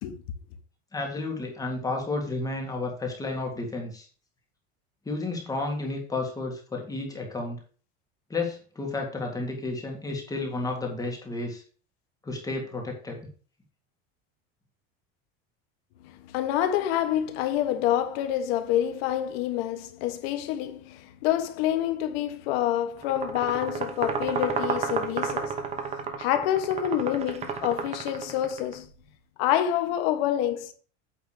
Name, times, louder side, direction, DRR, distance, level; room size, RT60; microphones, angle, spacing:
voice 1, 0.9-4.1 5.1-7.6 8.3-11.6 12.2-13.2, left 2 dB, 10° left, 1.8 m, -32 dB
voice 2, 16.0-28.9 29.4-30.7, left 11 dB, 65° left, 1.2 m, -27 dB
sound 1, 23.0-28.8, right 5 dB, 20° right, 1.0 m, -32 dB
8.9 x 3.4 x 6.5 m
cardioid pair, 165°, 32 cm